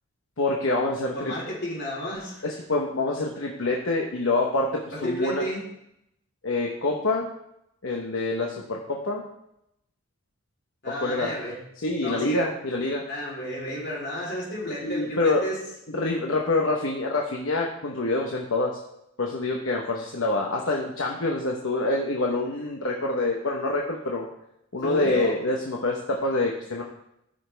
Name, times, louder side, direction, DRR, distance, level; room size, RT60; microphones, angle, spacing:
voice 1, 0.4-1.3 2.4-4.7 5.0-5.4 6.4-7.3 7.8-9.2 11.0-11.3 11.8-13.0 14.8-15.4 15.9-18.7 19.2-24.3 24.7-26.8, left 2 dB, 65° left, -1 dB, 1.0 m, -26 dB
voice 2, 1.1-2.4 4.9-5.6 10.8-11.6 12.0-12.4 13.1-15.6 24.8-25.3, equal, 50° left, -4 dB, 3.4 m, -32 dB
14.0 x 5.7 x 3.4 m, 0.81 s
head